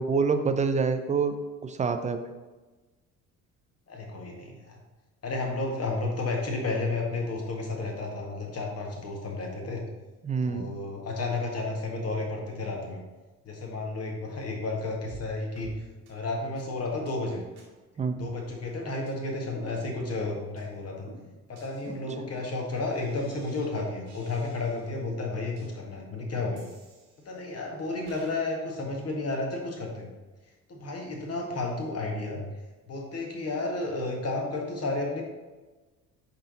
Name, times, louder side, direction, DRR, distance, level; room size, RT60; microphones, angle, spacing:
voice 1, 0.0-1.3 1.6-2.2 10.2-10.7 18.0-18.3 21.9-22.0, right 5 dB, 15° right, 7 dB, 0.5 m, -26 dB
voice 2, 3.9-4.8 5.2-9.8 10.4-13.0 13.5-15.7 16.1-17.4 18.2-21.1 21.5-26.6 27.3-30.1 30.7-32.4 32.9-35.2, left 2 dB, 35° left, 1 dB, 1.8 m, -32 dB
sound 1, 15.1-15.3 15.6-15.8 16.1-16.2 16.6-16.7 17.1-17.2 17.6-17.7 18.1-18.7 19.1-19.2 19.6-20.2 20.6-20.7 21.1-23.7 24.1-25.0 25.6-25.7 26.6-27.5 28.1-28.4, right 2 dB, 70° right, 1.9 m, -51 dB
10.5 x 3.8 x 4.1 m, 1.2 s
figure-of-eight pair, 55°, 45 cm